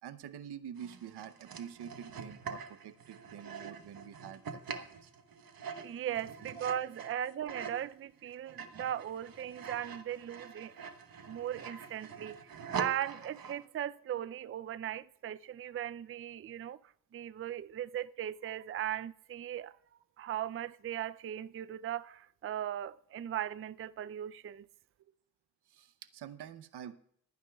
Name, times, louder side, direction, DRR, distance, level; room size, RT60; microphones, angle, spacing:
voice 1, 0.0-5.0 6.4-6.7 7.1-7.2 25.7-26.9, right 9 dB, 80° right, 0.8 m, -47 dB
sound 1, 0.8-7.9 8.3-13.6, right 6 dB, 60° right, 1.2 m, -44 dB
voice 2, 5.8-10.7 11.3-16.8 17.1-19.8 20.2-24.7, right 10 dB, 35° right, 0.4 m, -38 dB
25.5 x 9.4 x 2.3 m
cardioid pair, 70°, 39 cm